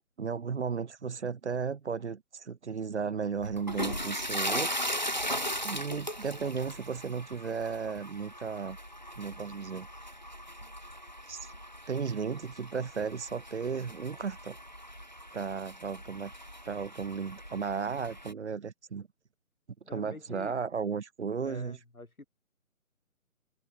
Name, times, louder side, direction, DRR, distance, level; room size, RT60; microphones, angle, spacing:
voice 1, 0.0-4.7 5.2-5.4 5.6-8.8 9.2-9.9 11.3-11.5 11.9-14.6 15.3-16.3 16.6-19.1 19.9-21.8, right 6 dB, 55° right, 0.9 m, -35 dB
sound 1, 3.3-18.3, equal, 35° left, 0.4 m, -38 dB
voice 2, 19.8-20.5 21.4-22.3, left 2 dB, 80° left, 4.1 m, -47 dB
figure-of-eight pair, 145°, 42 cm